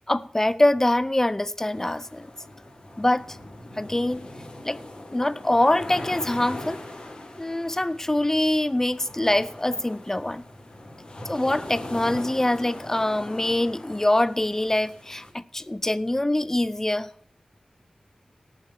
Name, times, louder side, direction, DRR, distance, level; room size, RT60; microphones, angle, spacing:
voice 1, 0.1-2.3 3.0-3.4 3.8-4.3 4.6-4.8 5.1-6.8 7.4-10.4 11.3-17.1, left 1 dB, 20° left, 0.4 m, -24 dB
sound 1, 1.7-15.3, left 1 dB, 35° left, 2.4 m, -40 dB
17.5 x 6.8 x 5.8 m
wide cardioid pair, 85°, 2 cm